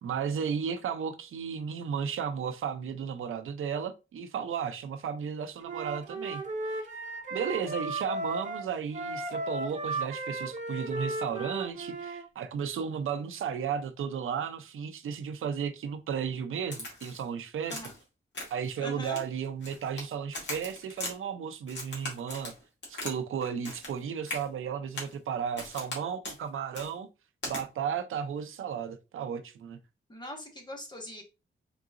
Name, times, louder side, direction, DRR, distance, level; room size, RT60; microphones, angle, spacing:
voice 1, 0.0-6.4 6.8-6.9 7.3-17.8 18.5-22.5 22.9-27.1 27.5-29.8, right 7 dB, 90° right, 0.5 m, -34 dB
Wind instrument woodwind instrument, 5.6-12.2, right 2 dB, 40° right, 1.0 m, -35 dB
Crack, 16.7-17.2 17.7-18.0 18.3-18.7 19.0-20.1 20.3-21.1 21.7-23.2 23.4-24.0 24.3-24.4 24.9-25.2 25.6-26.0 26.2-26.4 26.7-26.9 27.4-27.6, left 2 dB, 60° left, 1.8 m, -39 dB
voice 2, 18.8-19.2 30.1-31.2, left 1 dB, 20° left, 1.2 m, -41 dB
3.8 x 3.8 x 2.5 m
wide cardioid pair, 140°, 20 cm